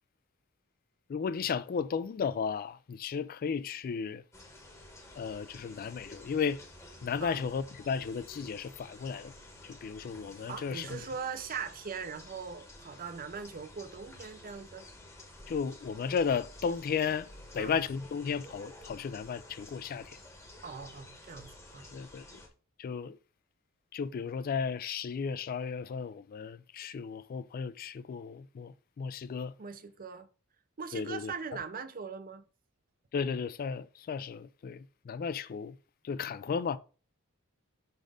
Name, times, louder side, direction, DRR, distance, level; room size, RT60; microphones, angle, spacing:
voice 1, 1.1-4.2 5.1-6.6 7.0-9.3 9.6-11.0 15.5-17.3 17.5-20.2 21.9-22.4 22.8-23.2 23.9-29.5 30.9-31.3 33.1-35.8 36.0-36.8, left 6 dB, 45° left, 0.3 m, -34 dB
sound 1, 4.3-22.5, left 1 dB, 15° left, 1.0 m, -52 dB
voice 2, 10.5-14.9 17.6-17.8 20.6-21.9 29.6-30.3 30.8-32.4, right 6 dB, 40° right, 0.5 m, -41 dB
5.1 x 4.1 x 4.9 m
head